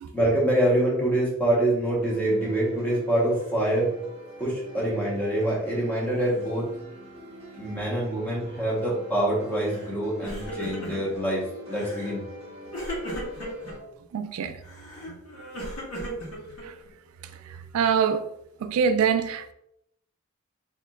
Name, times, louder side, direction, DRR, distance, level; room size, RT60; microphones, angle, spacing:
voice 1, 0.1-3.9 4.4-6.7 7.6-12.2, right 1 dB, 10° left, 1.1 m, -25 dB
sound 1, 2.0-13.8, equal, 30° right, 1.1 m, -44 dB
Crying sobbing, 9.6-9.9 10.2-11.2 11.7-12.2 12.7-13.7 14.6-16.9, equal, 85° left, 1.4 m, -36 dB
voice 2, 14.1-14.6 16.6-16.7 17.5-18.3 18.6-19.5, right 6 dB, 85° right, 0.3 m, -25 dB
4.2 x 2.9 x 2.4 m
head